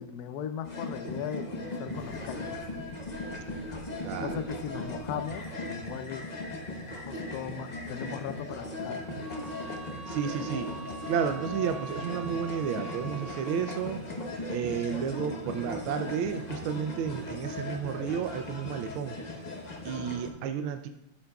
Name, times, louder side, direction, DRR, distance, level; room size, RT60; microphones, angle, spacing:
voice 1, 0.0-2.5 4.2-6.2 7.0-9.3, left 8 dB, 75° left, 10 dB, 0.9 m, -38 dB
sound 1, 0.6-20.3, left 1 dB, 35° left, 0.7 m, -38 dB
sound 2, 1.8-6.3, left 3 dB, ahead, 3.5 m, -54 dB
voice 2, 4.0-4.4 10.1-10.7 11.1-14.0 14.5-19.2 19.8-20.9, right 7 dB, 85° right, 7 dB, 1.5 m, -32 dB
sound 3, 9.2-13.9, right 3 dB, 55° right, 4.3 m, -44 dB
12.5 x 8.6 x 2.3 m, 0.86 s
omnidirectional pair, 2.2 m